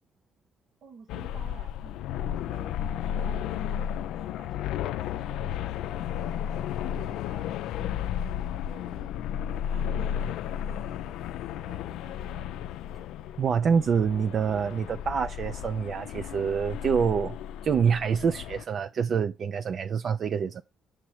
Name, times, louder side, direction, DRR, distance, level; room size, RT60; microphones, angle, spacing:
voice 1, 0.8-2.8 3.1-3.9 4.4-6.4 6.8-11.2 11.5-12.5, right 6 dB, 70° right, 1.1 m, -52 dB
sound 1, 1.1-18.6, left 10 dB, 85° left, 0.4 m, -33 dB
sound 2, 2.2-7.2, left 4 dB, 25° left, 0.4 m, -49 dB
voice 2, 13.4-17.4 17.6-20.6, right 6 dB, 45° right, 0.4 m, -26 dB
7.3 x 3.0 x 4.7 m
cardioid pair, 130°, 0 cm